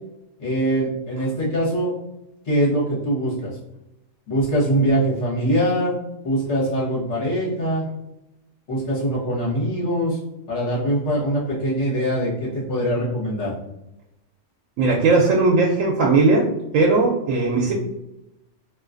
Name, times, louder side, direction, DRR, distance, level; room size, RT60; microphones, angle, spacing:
voice 1, 0.4-1.9 2.4-3.5 4.3-6.0 6.2-7.8 8.7-10.2 10.5-13.5, right 1 dB, 60° left, -6 dB, 1.5 m, -22 dB
voice 2, 14.8-16.5 16.7-17.7, right 3 dB, 80° right, -1 dB, 0.9 m, -18 dB
3.1 x 2.8 x 2.4 m, 0.89 s
omnidirectional pair, 1.4 m